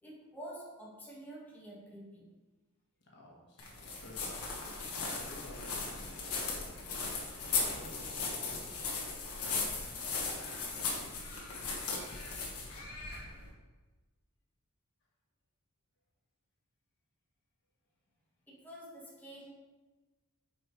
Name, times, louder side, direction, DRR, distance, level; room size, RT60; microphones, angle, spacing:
voice 1, 0.0-2.3 18.5-19.5, right 1 dB, 10° left, -5 dB, 1.5 m, -48 dB
voice 2, 3.1-6.9 7.5-8.5, left 1 dB, 55° left, -2 dB, 1.3 m, -54 dB
sound 1, 3.6-13.5, left 4 dB, 80° left, 1.5 m, -37 dB
8.6 x 5.0 x 3.1 m, 1.2 s
head